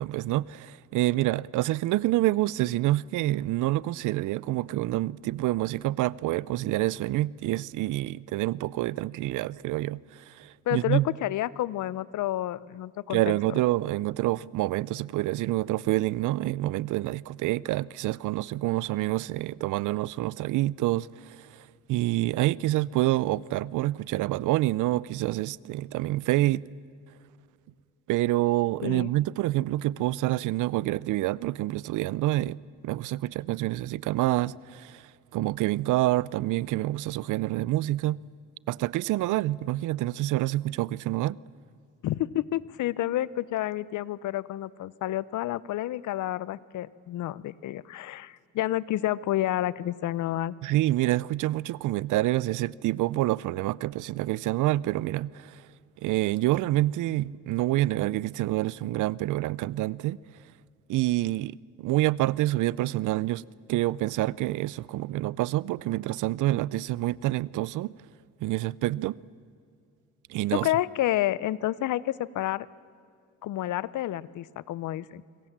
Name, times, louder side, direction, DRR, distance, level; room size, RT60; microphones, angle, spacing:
voice 1, 0.0-11.2 13.1-26.7 28.1-32.6 32.8-38.2 38.7-41.4 50.6-55.6 56.0-60.2 60.9-67.9 68.4-69.2 70.3-70.7, right 17 dB, 85° right, 0.6 m, -27 dB
voice 2, 10.7-13.4 28.8-29.1 42.0-50.5 70.5-72.7 73.4-75.2, left 14 dB, 75° left, 0.8 m, -29 dB
26.5 x 24.0 x 7.4 m
cardioid pair, 90°, 30 cm